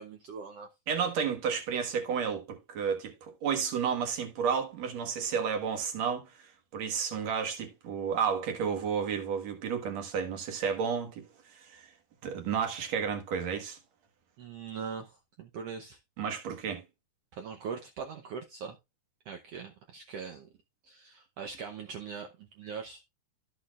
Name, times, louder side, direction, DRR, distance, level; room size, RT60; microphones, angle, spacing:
voice 1, 0.0-0.7 14.4-16.0 17.3-18.8 19.3-20.5 20.8-23.0, right 6 dB, 75° right, 1.4 m, -41 dB
voice 2, 0.9-11.2 11.5-11.9 12.2-13.8 16.2-16.8, right 7 dB, 60° right, 2.5 m, -32 dB
13.0 x 6.3 x 2.4 m
omnidirectional pair, 3.8 m